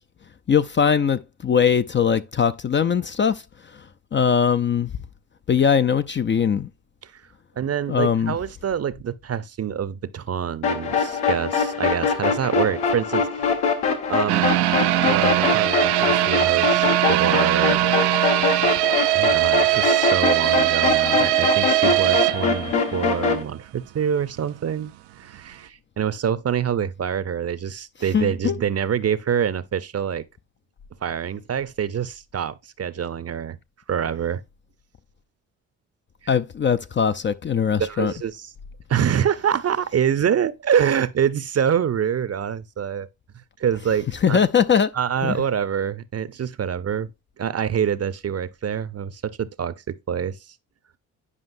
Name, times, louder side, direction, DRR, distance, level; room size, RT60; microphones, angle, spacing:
voice 1, 0.5-3.4 4.1-4.9 5.5-6.7 7.9-8.3 28.1-28.6 36.3-38.1 44.2-44.9 45.2-45.4, left 7 dB, 30° left, 0.5 m, -20 dB
voice 2, 7.6-13.5 14.1-14.5 15.0-17.9 19.1-24.9 25.2-30.2 31.0-33.6 33.9-34.4 37.8-38.5 38.9-43.1 43.6-44.4 44.9-47.1 47.4-50.4, right 8 dB, 40° right, 0.7 m, -25 dB
sound 1, 10.6-23.4, left 5 dB, 80° left, 1.7 m, -23 dB
sound 2, 14.3-23.3 23.6-23.7 24.2-24.3, right 17 dB, 80° right, 0.6 m, -21 dB
9.8 x 5.2 x 2.6 m
hypercardioid pair, 50°, 40 cm